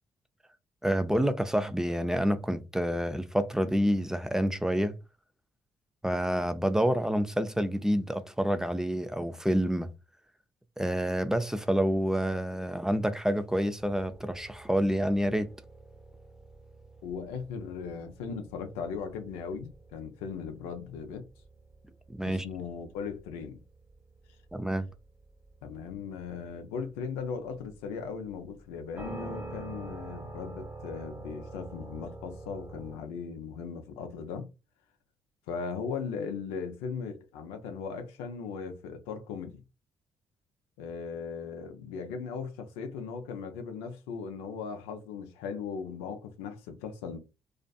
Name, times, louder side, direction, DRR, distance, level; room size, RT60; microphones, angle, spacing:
voice 1, 0.8-4.9 6.0-9.9 10.8-15.5 22.2-22.5 24.5-24.9, equal, 5° right, 0.4 m, -28 dB
sound 1, 13.8-33.0, right 2 dB, 25° right, 1.2 m, -47 dB
voice 2, 17.0-21.3 22.2-23.6 25.6-34.5 35.5-39.6 40.8-47.2, left 6 dB, 85° left, 0.4 m, -38 dB
2.4 x 2.4 x 2.2 m
hypercardioid pair, 50°, 10 cm